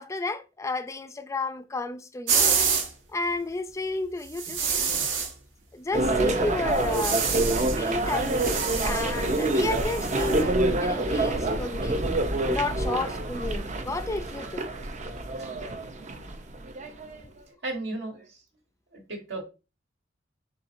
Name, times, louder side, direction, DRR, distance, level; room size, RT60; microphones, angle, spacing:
voice 1, 0.0-2.6 3.1-4.6 5.7-7.2 7.7-12.0 12.4-14.7, left 2 dB, 15° left, 0.4 m, -32 dB
sound 1, 2.3-2.9 4.3-5.3 6.8-7.8 8.1-10.4, right 6 dB, 85° right, 1.3 m, -28 dB
sound 2, 5.9-17.2, right 2 dB, 40° right, 0.6 m, -27 dB
voice 2, 17.3-18.4 18.9-19.4, right 2 dB, 70° right, 1.5 m, -37 dB
4.3 x 4.0 x 2.6 m
head